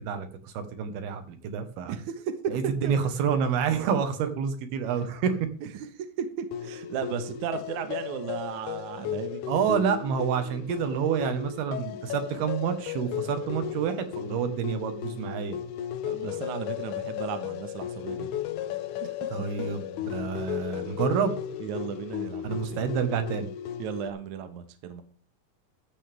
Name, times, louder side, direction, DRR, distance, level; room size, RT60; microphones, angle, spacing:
voice 1, 0.0-2.0 2.5-5.5 9.5-15.6 19.3-21.4 22.4-23.5, right 7 dB, 80° right, 8 dB, 3.3 m, -28 dB
voice 2, 1.9-2.2 2.8-2.9 5.6-5.9 6.2-9.4 16.1-18.3 19.0-19.1 21.6-22.8 23.8-25.0, right 8 dB, 60° right, 9 dB, 2.4 m, -35 dB
sound 1, 6.5-24.1, left 11 dB, 70° left, 2.0 m, -35 dB
14.0 x 12.0 x 3.5 m, 0.43 s
omnidirectional pair, 4.5 m